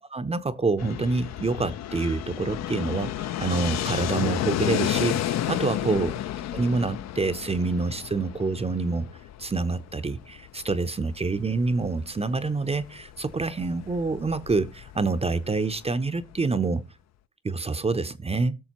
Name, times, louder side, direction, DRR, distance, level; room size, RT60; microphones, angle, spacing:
voice 1, 0.1-6.1 6.5-9.1 9.4-16.8 17.4-18.6, right 3 dB, 20° right, 0.6 m, -27 dB
Fixed-wing aircraft airplane, 0.8-16.5, left 12 dB, 60° left, 0.5 m, -32 dB
17.0 x 6.4 x 2.9 m
cardioid pair, 90°, 30 cm